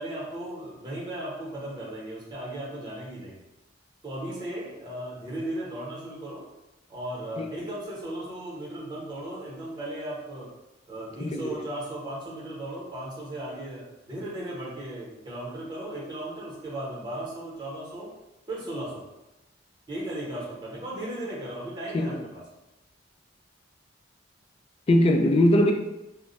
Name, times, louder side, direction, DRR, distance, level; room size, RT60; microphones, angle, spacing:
voice 1, 0.0-3.4 4.0-6.4 6.9-10.5 10.9-18.1 18.5-19.0 19.9-22.4, right 1 dB, 25° right, 0.9 m, -36 dB
voice 2, 11.2-11.6 21.9-22.2 24.9-25.7, left 1 dB, 30° left, 0.3 m, -21 dB
2.2 x 2.1 x 3.8 m
head